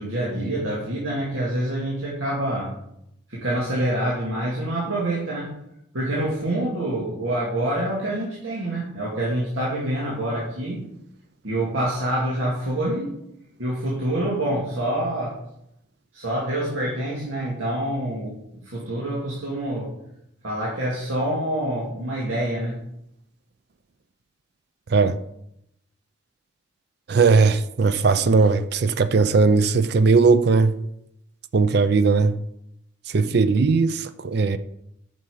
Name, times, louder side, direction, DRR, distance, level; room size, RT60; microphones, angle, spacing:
voice 1, 0.0-2.7 3.3-5.6 5.9-10.8 11.4-13.1 13.6-15.4 16.1-19.9 20.4-22.8, right 1 dB, 90° right, 2.1 m, -26 dB
voice 2, 27.1-30.8 31.5-32.4 33.1-34.6, right 4 dB, 55° right, 0.4 m, -18 dB
9.2 x 5.6 x 4.8 m
head